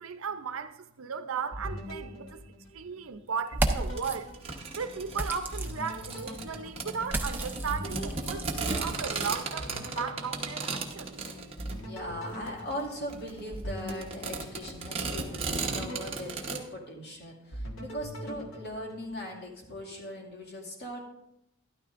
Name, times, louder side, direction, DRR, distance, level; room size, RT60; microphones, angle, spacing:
voice 1, 0.0-4.3 4.8-11.5, right 6 dB, 75° right, 0.6 m, -36 dB
sound 1, 1.5-3.1 3.5-5.1 5.5-9.2 9.6-11.2 11.6-15.1 15.5-17.1 17.5-19.5, equal, 65° left, 1.7 m, -42 dB
sound 2, 3.5-4.2 5.1-6.3 7.0-9.4, right 2 dB, 10° right, 0.6 m, -33 dB
sound 3, 3.9-16.6, right 3 dB, 30° right, 1.1 m, -36 dB
voice 2, 11.9-21.0, equal, 50° left, 2.3 m, -39 dB
12.5 x 12.0 x 2.6 m
head